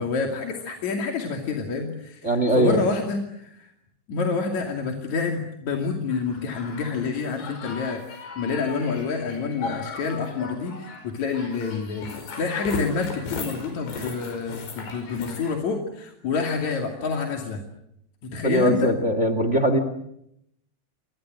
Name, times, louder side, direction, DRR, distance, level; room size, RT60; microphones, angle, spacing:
voice 1, 0.0-3.7 4.1-17.6 18.2-18.9, left 4 dB, 45° left, 2 dB, 3.4 m, -28 dB
voice 2, 2.2-2.9 18.4-19.8, equal, 65° right, 11 dB, 0.7 m, -21 dB
sound 1, 6.1-15.5, left 4 dB, 85° left, 7.6 m, -37 dB
29.5 x 24.5 x 7.7 m, 0.76 s
omnidirectional pair, 5.1 m